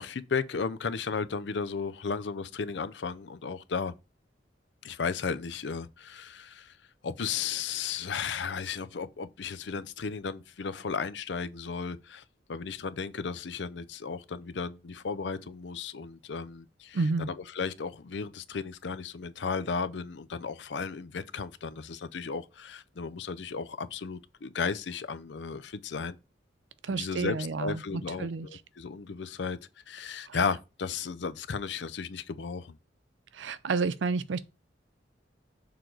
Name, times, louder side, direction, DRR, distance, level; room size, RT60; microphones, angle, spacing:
voice 1, 0.0-3.9 4.8-6.7 7.0-12.2 12.5-26.2 26.9-29.6 29.9-32.8, left 5 dB, 70° left, 0.5 m, -34 dB
voice 2, 16.9-17.3 26.8-28.5 30.3-30.4 33.3-34.5, right 4 dB, 80° right, 0.5 m, -30 dB
6.6 x 3.9 x 4.5 m
head